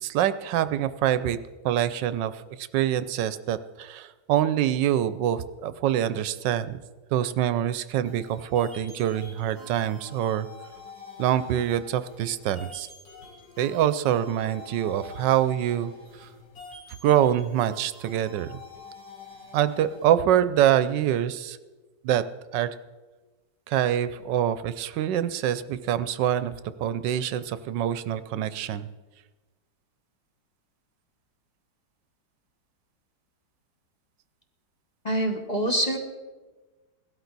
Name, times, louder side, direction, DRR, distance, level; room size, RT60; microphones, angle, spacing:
voice 1, 0.0-1.4 1.6-6.8 7.1-10.5 11.2-12.9 13.6-15.9 16.2-16.3 17.0-18.6 19.5-21.6 22.0-22.2 22.5-22.7 23.7-26.5 26.8-28.9, right 11 dB, 80° right, 14 dB, 1.3 m, -25 dB
sound 1, 8.1-20.1, left 4 dB, 85° left, 3.8 m, -47 dB
voice 2, 35.0-36.0, right 1 dB, 25° left, 2 dB, 1.2 m, -25 dB
17.0 x 12.5 x 4.0 m, 1.2 s
omnidirectional pair, 1.9 m